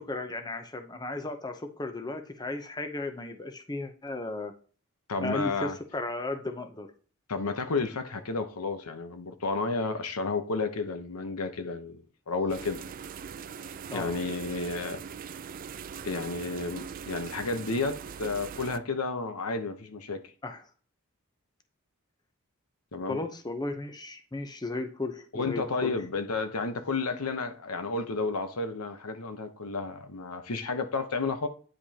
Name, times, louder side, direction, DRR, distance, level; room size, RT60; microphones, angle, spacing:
voice 1, 0.0-4.5 5.2-6.9 13.9-14.1 20.4-20.6 23.1-25.9, left 2 dB, 20° left, 0.7 m, -35 dB
voice 2, 5.1-5.8 7.3-12.0 12.3-12.8 13.9-15.0 16.0-20.2 22.9-23.2 25.3-31.5, left 3 dB, 85° left, 0.9 m, -31 dB
sound 1, 12.5-18.8, right 7 dB, 40° right, 0.4 m, -41 dB
9.7 x 5.1 x 2.9 m
head